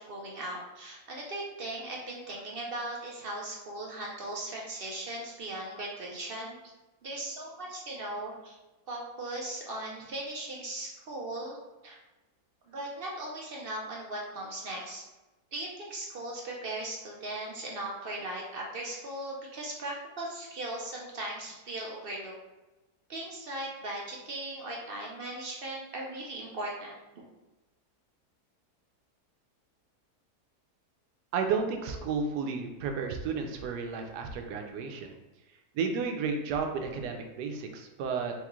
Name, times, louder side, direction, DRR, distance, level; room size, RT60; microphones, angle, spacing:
voice 1, 0.0-6.6 7.0-8.6 8.9-11.6 11.8-12.0 12.7-15.0 15.5-22.3 23.1-27.0, right 1 dB, 55° right, -2 dB, 0.6 m, -38 dB
voice 2, 31.3-35.1 35.7-38.3, right 5 dB, 90° right, 4 dB, 1.2 m, -32 dB
3.6 x 3.1 x 3.6 m, 1.1 s
omnidirectional pair, 1.7 m